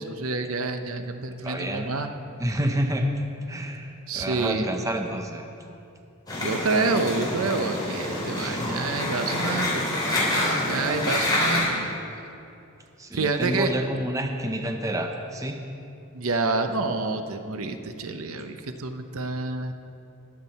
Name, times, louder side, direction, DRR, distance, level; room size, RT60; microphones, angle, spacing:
voice 1, 0.0-2.1 4.1-4.7 6.4-11.9 13.1-13.7 16.1-19.7, right 3 dB, 70° right, 7 dB, 0.7 m, -28 dB
voice 2, 1.4-1.9 2.4-3.1 3.4-5.5 8.3-8.9 13.0-15.6, right 1 dB, 15° right, 4 dB, 0.6 m, -29 dB
sound 1, 6.3-11.6, left 1 dB, 20° left, 3.0 m, -27 dB
20.0 x 7.5 x 4.1 m, 2.7 s
head